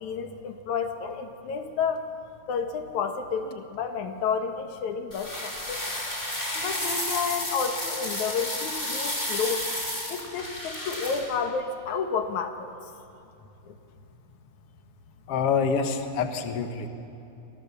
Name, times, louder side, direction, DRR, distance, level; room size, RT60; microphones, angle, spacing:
voice 1, 0.0-2.1 2.5-5.9 6.5-9.7 10.1-12.7 13.7-13.8, left 6 dB, 85° left, 6 dB, 2.8 m, -30 dB
sound 1, 5.1-11.2, left 1 dB, 20° left, 5.3 m, -32 dB
voice 2, 15.3-16.9, left 6 dB, 55° left, 6 dB, 2.4 m, -26 dB
30.0 x 24.0 x 7.1 m, 2.8 s
omnidirectional pair, 3.3 m